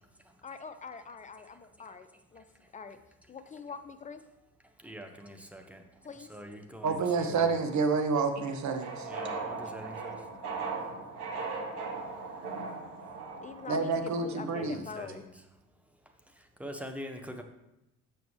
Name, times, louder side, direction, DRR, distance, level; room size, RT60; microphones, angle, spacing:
voice 1, 0.4-2.4 2.7-3.0 3.3-4.2 6.0-6.3 9.6-9.7 13.4-13.9 14.2-15.2, left 5 dB, 20° left, 9 dB, 0.4 m, -44 dB
voice 2, 4.8-5.8 6.1-7.5 9.0-10.2 14.6-15.4 16.6-17.4, equal, 5° right, 4 dB, 0.8 m, -44 dB
voice 3, 6.8-9.1 13.7-14.8, right 4 dB, 40° right, 5 dB, 1.0 m, -29 dB
sound 1, 7.2-13.8, right 4 dB, 80° right, 1.2 m, -39 dB
7.0 x 6.0 x 3.2 m, 0.88 s
figure-of-eight pair, 50°, 46 cm